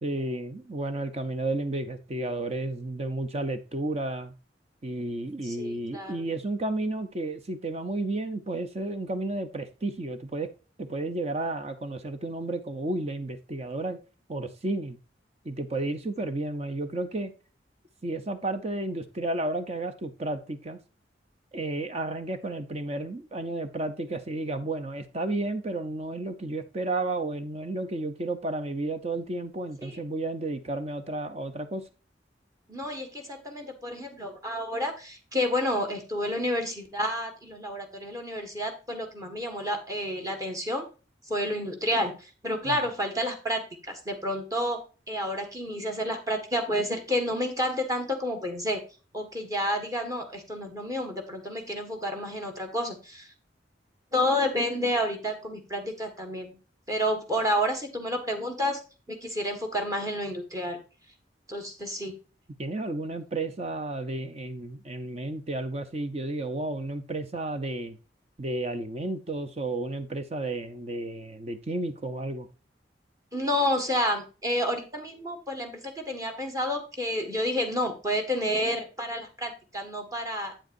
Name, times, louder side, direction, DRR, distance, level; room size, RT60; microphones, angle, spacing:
voice 1, 0.0-4.3 4.8-10.5 10.8-14.0 14.3-15.0 15.4-17.3 18.0-20.8 21.5-31.8 42.6-42.8 62.6-68.0 68.4-72.5, right 2 dB, 35° right, 9 dB, 0.7 m, -32 dB
voice 2, 5.4-6.2 29.8-30.0 32.7-40.8 41.3-44.8 45.1-48.8 49.1-53.3 54.1-56.6 56.9-58.8 59.1-60.8 61.5-62.1 73.3-80.5, equal, 20° right, 4 dB, 1.6 m, -30 dB
8.7 x 7.8 x 2.6 m, 0.33 s
head